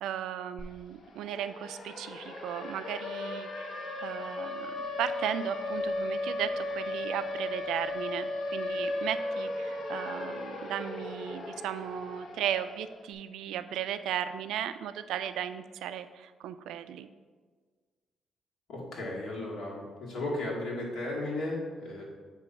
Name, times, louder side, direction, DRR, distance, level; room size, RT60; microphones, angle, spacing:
voice 1, 0.0-4.7 5.0-17.1, right 10 dB, 85° right, 11 dB, 0.3 m, -36 dB
Siren, 0.6-0.7 1.0-13.0, left 2 dB, 55° left, 0.9 m, -36 dB
voice 2, 18.7-22.0, left 2 dB, 75° left, -4 dB, 2.1 m, -35 dB
8.1 x 3.0 x 5.6 m, 1.5 s
cardioid pair, 90°, 0 cm